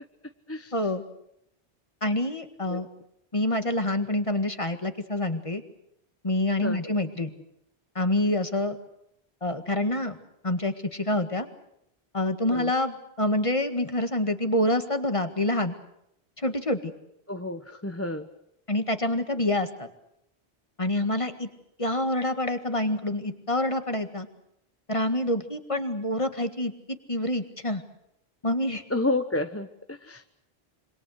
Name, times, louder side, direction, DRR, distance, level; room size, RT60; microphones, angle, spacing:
voice 1, 0.7-1.0 2.0-2.9 3.3-5.6 6.2-7.3 8.0-8.8 9.4-10.2 10.4-11.5 12.1-15.7 16.4-16.9 18.7-19.9 20.8-21.5 21.8-24.3 24.9-27.8 28.4-28.8, left 1 dB, 30° left, 8 dB, 1.9 m, -27 dB
voice 2, 6.6-6.9 12.5-12.7 17.3-18.3 28.9-30.2, left 2 dB, 15° left, 8 dB, 0.9 m, -30 dB
26.5 x 24.5 x 6.5 m, 0.79 s
omnidirectional pair, 1.0 m